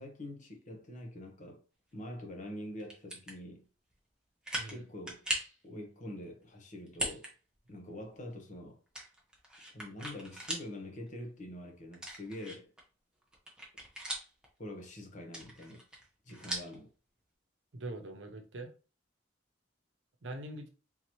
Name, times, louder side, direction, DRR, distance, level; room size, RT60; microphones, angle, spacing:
voice 1, 0.0-1.6 1.9-3.7 4.7-5.2 5.6-7.3 7.7-8.8 9.7-12.7 14.6-15.8 16.2-16.9, left 1 dB, 40° left, 0.9 m, -45 dB
sound 1, 2.8-3.4 3.9-4.0 4.4-4.8 5.1-5.6 6.9-7.3 7.7-7.8 8.9-10.7 11.1-11.2 11.9-12.8 13.2-14.5 15.2-16.8, right 1 dB, 5° right, 0.9 m, -39 dB
voice 2, 17.7-18.7 20.2-20.7, right 2 dB, 70° right, 0.7 m, -43 dB
3.8 x 2.9 x 3.0 m
head